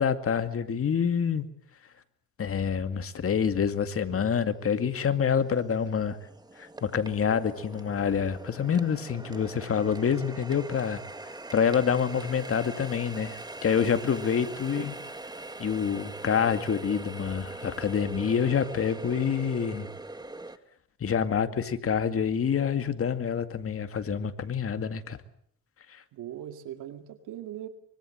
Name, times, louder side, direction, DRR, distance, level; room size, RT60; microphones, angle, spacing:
voice 1, 0.0-1.5 2.4-6.2 6.6-11.0 11.5-14.9 15.6-19.9 21.0-25.2 25.9-26.0, left 7 dB, 50° left, 9 dB, 2.3 m, -27 dB
Water tap faucet, 4.1-4.2 4.7-20.6, right 2 dB, 15° right, 1.8 m, -42 dB
voice 2, 9.1-9.4 14.5-15.0 26.1-27.7, right 11 dB, 85° right, 8 dB, 2.2 m, -41 dB
24.5 x 22.5 x 7.9 m, 0.65 s
cardioid pair, 90°, 30 cm